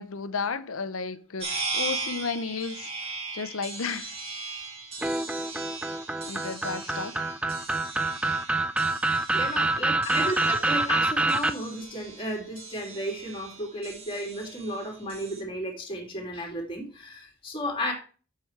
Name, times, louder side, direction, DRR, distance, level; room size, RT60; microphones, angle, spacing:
voice 1, 0.0-2.9 3.3-4.1 6.3-7.2, left 5 dB, 75° left, 0.8 m, -33 dB
sound 1, 1.4-15.4, right 3 dB, 30° right, 2.4 m, -38 dB
sound 2, 5.0-11.5, right 2 dB, 5° right, 0.4 m, -26 dB
voice 2, 9.0-17.9, equal, 25° left, 2.7 m, -34 dB
7.7 x 7.1 x 4.6 m
head